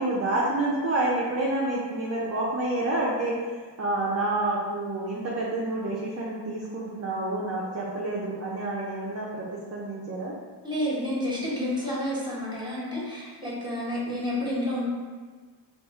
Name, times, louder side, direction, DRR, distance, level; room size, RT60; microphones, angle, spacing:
voice 1, 0.0-3.3 3.8-10.3, right 2 dB, 35° right, -5 dB, 0.5 m, -28 dB
voice 2, 10.6-14.8, left 1 dB, 10° right, -6 dB, 1.1 m, -30 dB
2.9 x 2.4 x 3.6 m, 1.5 s
cardioid pair, 75°, 46 cm